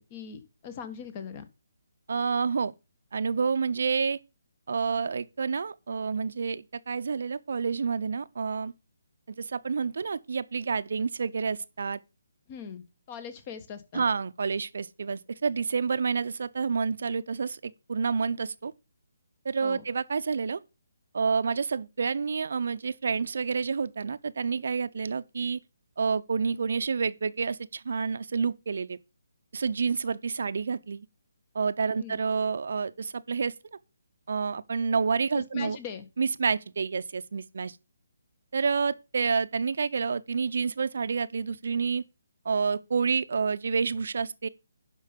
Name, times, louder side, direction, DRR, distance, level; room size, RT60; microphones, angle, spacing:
voice 1, 0.0-1.4 12.5-14.0 19.6-19.8 31.9-32.2 35.3-36.1, left 7 dB, 30° left, 1.5 m, -41 dB
voice 2, 2.1-2.7 3.1-4.2 4.7-8.7 9.4-12.0 13.9-18.7 19.4-20.6 21.1-25.6 26.0-29.0 29.5-31.1 31.5-33.5 34.3-35.8 36.2-37.8 38.5-42.0 42.4-44.5, right 5 dB, 60° right, 0.7 m, -29 dB
11.5 x 5.5 x 5.3 m
figure-of-eight pair, 145°, 0 cm